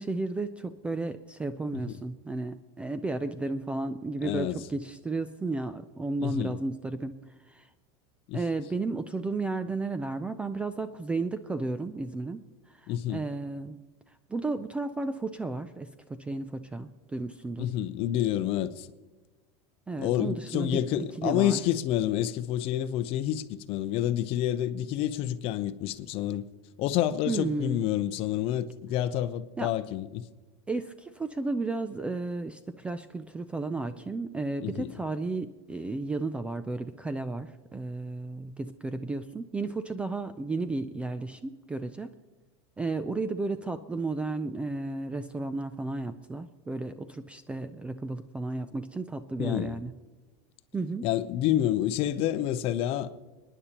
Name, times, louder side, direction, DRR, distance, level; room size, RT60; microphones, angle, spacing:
voice 1, 0.0-7.2 7.5-7.7 8.3-12.4 12.7-13.8 14.3-17.7 19.9-20.8 21.2-21.6 27.3-27.8 29.6-29.7 30.7-42.1 42.8-49.9 50.7-51.1, right 3 dB, 10° right, 0.3 m, -33 dB
voice 2, 4.2-4.6 6.2-6.6 8.3-8.4 12.9-13.2 17.6-18.9 20.0-26.4 26.8-30.3 34.6-34.9 49.4-49.8 51.0-53.1, left 12 dB, 40° left, 0.7 m, -28 dB
29.0 x 10.0 x 2.9 m
supercardioid pair, 155°, 15 cm